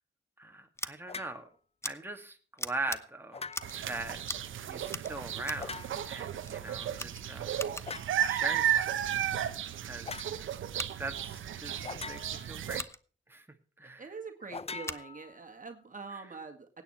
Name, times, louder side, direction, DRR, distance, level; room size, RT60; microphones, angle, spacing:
voice 1, 0.4-1.5 1.8-3.5 3.8-4.2 4.7-5.8 6.1-7.6 8.3-8.8 9.2-9.3 9.8-10.3 11.0-12.8 13.3-13.5 13.8-14.0, right 2 dB, 10° right, 4 dB, 2.1 m, -40 dB
Scissors, 0.8-0.9 1.8-1.9 2.6-3.0 3.5-3.8 4.2-4.5 4.9-5.7 6.4-6.6 6.9-8.0 10.7-10.9 12.7-13.0 14.8-15.1, left 1 dB, 15° left, 0.9 m, -40 dB
sound 1, 1.1-1.4 3.3-3.9 5.6-6.2 7.8-8.2 10.0-10.3 11.8-12.6 14.5-15.6, left 5 dB, 30° left, 0.5 m, -43 dB
sound 2, 3.6-12.8, right 10 dB, 85° right, 0.8 m, -34 dB
voice 2, 14.0-16.8, right 4 dB, 45° right, 4 dB, 1.9 m, -44 dB
16.5 x 9.1 x 4.4 m, 0.39 s
supercardioid pair, 45°, 20 cm